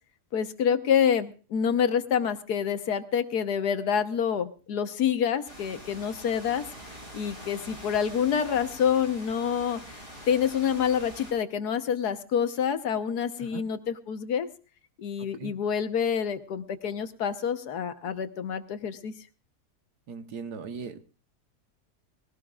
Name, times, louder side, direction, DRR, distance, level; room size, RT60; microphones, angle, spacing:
voice 1, 0.3-6.7 7.1-14.5 15.0-19.1, left 8 dB, 80° left, 10 dB, 1.6 m, -27 dB
sound 1, 5.5-11.3, equal, 45° right, 6.9 m, -45 dB
voice 2, 20.1-21.0, right 6 dB, 85° right, 9 dB, 1.8 m, -38 dB
20.5 x 17.5 x 2.4 m, 0.35 s
omnidirectional pair, 1.7 m